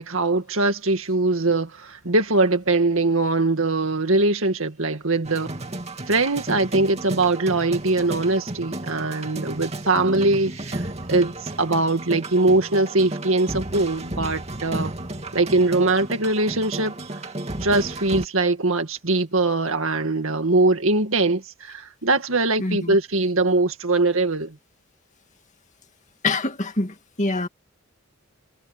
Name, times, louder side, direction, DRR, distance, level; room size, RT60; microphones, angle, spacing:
voice 1, 0.0-5.5 6.1-14.9 15.3-17.0 17.6-24.6, right 2 dB, 70° right, 2.1 m, -22 dB
sound 1, 5.2-18.3, right 1 dB, 30° right, 2.5 m, -33 dB
voice 2, 22.6-23.0 26.2-27.5, left 2 dB, 35° left, 2.2 m, -25 dB
head